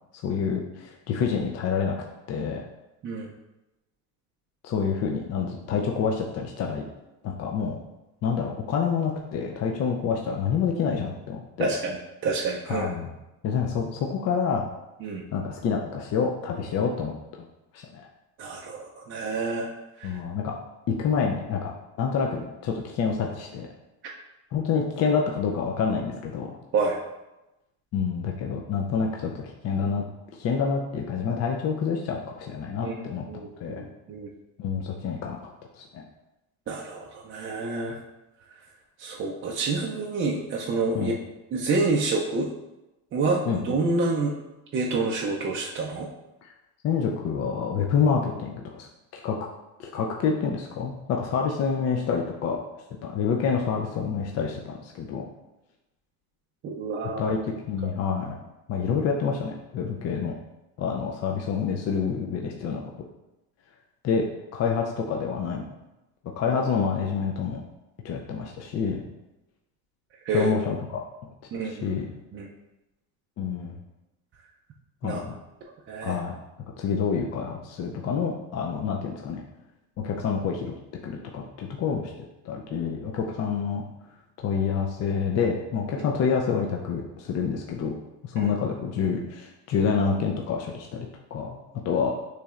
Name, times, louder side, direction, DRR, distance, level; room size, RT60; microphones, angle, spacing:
voice 1, 0.2-2.0 2.3-2.6 4.6-6.8 7.2-7.8 8.2-11.7 12.7-13.1 13.4-14.6 15.3-17.1 17.7-18.0 20.0-20.5 20.9-21.7 22.0-23.7 24.5-26.6 27.9-30.0 30.3-33.2 33.6-33.9 34.6-35.4 35.7-36.0 40.9-41.1 43.5-43.8 46.4-46.5 46.8-48.9 49.1-49.4 49.8-52.6 53.0-55.3 57.2-58.4 58.7-60.3 60.8-62.8 64.0-64.2 64.5-65.7 66.4-67.6 68.0-69.0 70.3-71.0 71.5-72.1 73.4-73.8 75.0-75.3 76.0-76.4 76.8-79.4 80.0-80.7 81.0-82.1 82.4-83.8 84.4-88.0 88.2-91.6 91.8-92.2, left 6 dB, 40° left, 0 dB, 0.5 m, -27 dB
voice 2, 11.6-12.0 12.2-12.9 15.0-15.2 18.4-19.7 20.0-20.2 26.7-27.0 32.8-34.3 36.7-38.0 39.0-41.1 41.5-42.5 43.1-44.4 44.7-46.1 56.6-57.3 57.8-57.9 66.5-66.6 70.3-70.5 71.5-71.9 72.3-72.5 75.0-75.2 75.9-76.2 86.0-86.1 88.4-88.5, right 3 dB, 30° right, -2 dB, 0.4 m, -28 dB
6.6 x 3.2 x 2.4 m, 0.98 s
cardioid pair, 125°, 42 cm